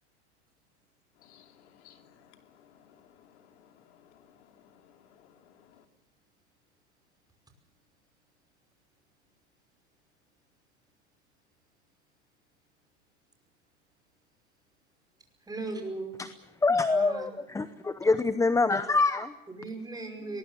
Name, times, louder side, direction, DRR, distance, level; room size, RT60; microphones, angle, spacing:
voice 1, 1.2-5.8, left 9 dB, 80° left, 5 dB, 2.9 m, -59 dB
voice 2, 15.4-16.2 16.9-17.3 19.5-20.4, right 3 dB, 10° right, 4 dB, 5.5 m, -37 dB
voice 3, 16.6-19.3, left 3 dB, 10° left, 13 dB, 0.7 m, -25 dB
23.0 x 20.5 x 7.4 m, 0.89 s
supercardioid pair, 115°, 34 cm